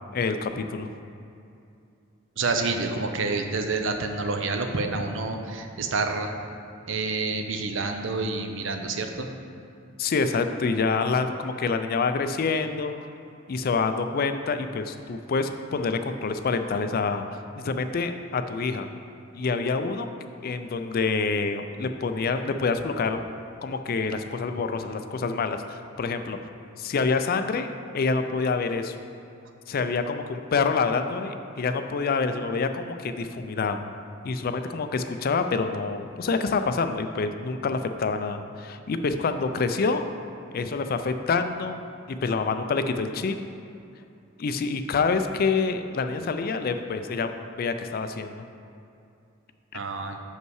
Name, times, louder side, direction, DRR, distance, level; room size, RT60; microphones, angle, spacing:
voice 1, 0.1-0.9 10.0-12.9 13.5-18.9 19.3-20.1 20.4-23.2 23.6-26.4 26.8-29.0 29.7-33.8 34.2-40.1 40.5-41.8 42.1-43.4 44.4-47.3 47.6-48.5, left 4 dB, 50° left, 8 dB, 0.4 m, -27 dB
voice 2, 2.4-6.3 6.9-9.3 49.7-50.2, right 3 dB, 65° right, 5 dB, 0.6 m, -28 dB
6.7 x 5.4 x 4.7 m, 2.6 s
head